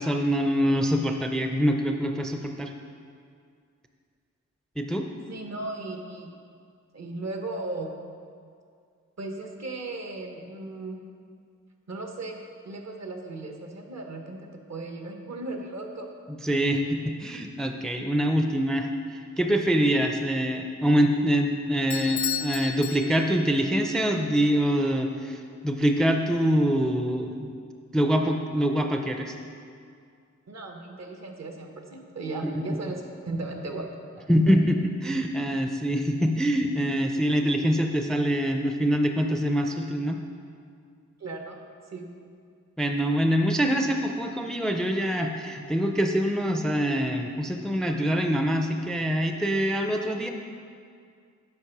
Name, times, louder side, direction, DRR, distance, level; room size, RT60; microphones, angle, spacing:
voice 1, 0.0-2.7 4.8-5.1 16.3-27.5 27.9-29.3 32.4-32.6 34.3-34.8 35.0-40.2 42.8-50.3, equal, ahead, 4 dB, 0.4 m, -25 dB
voice 2, 5.3-6.3 6.9-7.9 9.2-11.0 11.9-12.4 12.6-16.1 30.5-34.5 41.2-41.6 41.9-42.1, right 2 dB, 60° right, 3 dB, 1.1 m, -36 dB
Bell / Doorbell, 21.9-23.6, left 10 dB, 75° left, 0.5 m, -33 dB
8.4 x 5.3 x 5.9 m, 2.2 s
wide cardioid pair, 125°, 30 cm